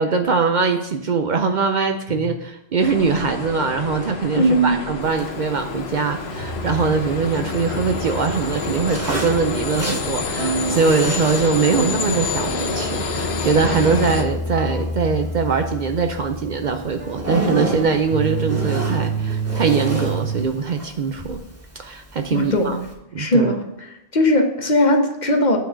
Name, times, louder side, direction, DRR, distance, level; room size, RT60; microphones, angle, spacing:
voice 1, 0.0-21.4 21.8-22.8 23.1-23.5, right 5 dB, 55° right, 6 dB, 0.6 m, -22 dB
sound 1, 2.8-14.2, left 5 dB, 80° left, 1.0 m, -28 dB
voice 2, 4.3-4.8 22.3-22.8 23.2-25.6, left 1 dB, 50° left, 5 dB, 0.9 m, -19 dB
Zipper (clothing), 5.0-22.9, right 1 dB, 15° right, 1.3 m, -34 dB
sound 2, 6.3-20.4, right 3 dB, 80° right, 1.3 m, -29 dB
8.5 x 3.8 x 6.1 m, 0.87 s
omnidirectional pair, 1.1 m